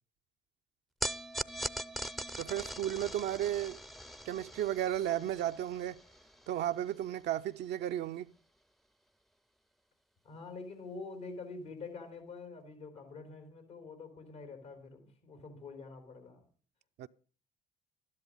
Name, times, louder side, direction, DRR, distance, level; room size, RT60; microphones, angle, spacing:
sound 1, 1.0-7.4, equal, ahead, 0.5 m, -42 dB
voice 1, 2.4-3.8 4.3-6.0 6.5-8.3 17.0-17.1, right 12 dB, 60° right, 0.5 m, -34 dB
voice 2, 10.2-16.4, left 4 dB, 80° left, 3.4 m, -46 dB
12.5 x 10.5 x 5.3 m
hypercardioid pair, 45°, 20 cm